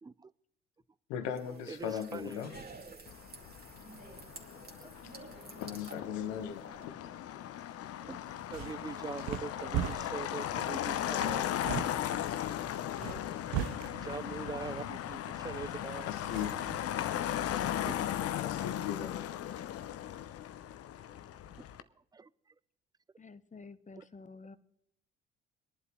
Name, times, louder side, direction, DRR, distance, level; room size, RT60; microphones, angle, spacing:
voice 1, 1.1-2.6 5.0-5.1 5.6-7.0 11.5-11.6 13.5-13.7 16.0-16.7 18.4-19.2, left 9 dB, 70° left, 1.4 m, -38 dB
sound 1, 1.2-6.9, right 3 dB, 30° right, 2.3 m, -51 dB
voice 2, 1.7-2.4 4.8-4.9 8.0-8.2 8.5-11.5 14.0-16.1 17.6-18.0 22.1-22.3 24.0-24.1, right 4 dB, 15° right, 0.6 m, -43 dB
Motor vehicle (road), 3.1-21.8, left 11 dB, 50° left, 0.8 m, -37 dB
sound 2, 8.3-16.8, right 11 dB, 65° right, 0.7 m, -41 dB
voice 3, 23.2-24.6, left 4 dB, 25° left, 1.1 m, -50 dB
24.0 x 11.0 x 3.1 m
hypercardioid pair, 50°, 31 cm